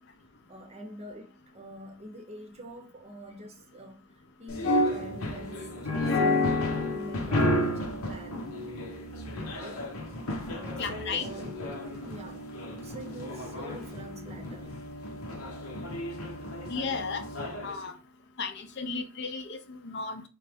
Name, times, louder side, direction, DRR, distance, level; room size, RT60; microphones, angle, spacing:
voice 1, 0.5-4.0 4.4-8.4 9.5-9.9 10.5-14.7, equal, 30° right, 0.7 m, -45 dB
sound 1, 4.5-17.8, left 1 dB, 90° left, 0.9 m, -31 dB
voice 2, 10.8-11.3 16.7-17.2 17.6-17.9 18.4-20.2, left 4 dB, 50° left, 0.5 m, -34 dB
3.9 x 3.2 x 3.4 m
head